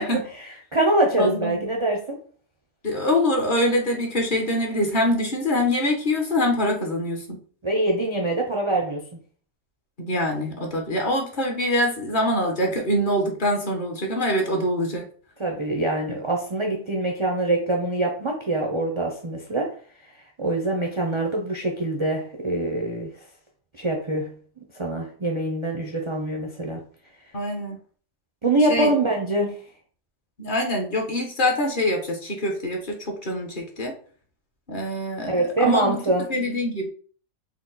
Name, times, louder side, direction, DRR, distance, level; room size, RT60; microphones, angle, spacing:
voice 1, 0.0-2.2 7.6-9.1 15.4-19.8 20.4-23.1 23.8-24.4 24.8-26.8 28.4-29.6 35.3-36.3, right 2 dB, 45° right, 0.4 m, -24 dB
voice 2, 1.2-1.6 2.8-7.4 10.0-15.1 27.3-27.8 28.7-28.9 30.4-33.9 34.7-36.0 36.3-36.9, left 1 dB, 45° left, 0.9 m, -24 dB
4.6 x 2.1 x 3.8 m
omnidirectional pair, 1.4 m